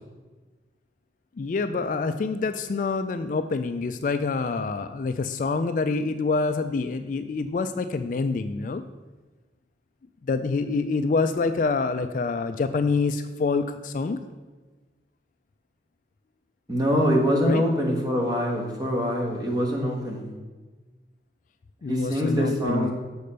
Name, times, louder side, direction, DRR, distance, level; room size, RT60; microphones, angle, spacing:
voice 1, 1.4-8.8 10.2-14.2 17.4-17.6 21.8-22.9, left 4 dB, 45° left, 9 dB, 0.3 m, -26 dB
voice 2, 16.7-20.3 21.9-22.9, equal, 20° right, -1 dB, 1.3 m, -24 dB
6.7 x 4.3 x 6.6 m, 1.3 s
head